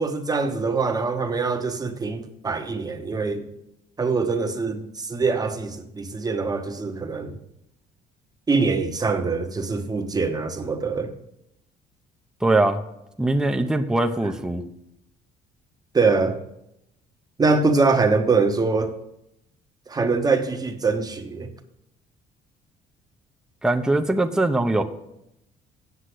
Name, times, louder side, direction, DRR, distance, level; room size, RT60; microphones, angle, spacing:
voice 1, 0.0-3.4 4.0-7.4 8.5-11.1 15.9-16.4 17.4-19.0 19.9-21.5, right 4 dB, 20° right, 1.1 m, -23 dB
voice 2, 12.4-12.8 13.2-14.6 23.6-24.8, right 2 dB, 5° right, 0.8 m, -21 dB
8.3 x 7.3 x 7.9 m
cardioid pair, 110°, 17 cm